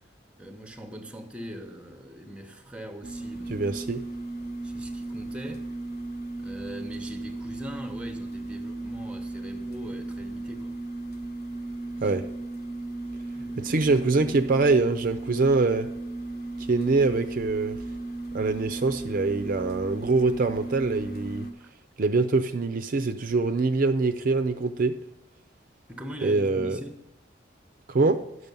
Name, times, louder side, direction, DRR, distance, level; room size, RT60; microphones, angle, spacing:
voice 1, 0.4-3.7 4.6-5.7 6.4-10.8 12.0-12.1 13.3-13.8 21.6-21.7 25.9-27.1, equal, 5° right, 0.8 m, -41 dB
sound 1, 3.0-21.5, right 2 dB, 55° left, 1.2 m, -36 dB
voice 2, 3.5-4.0 12.0-12.2 13.6-15.9 16.7-17.8 18.3-21.5 22.0-25.0 26.2-26.8 27.9-28.2, right 3 dB, 50° right, 0.5 m, -24 dB
10.0 x 6.4 x 5.3 m
head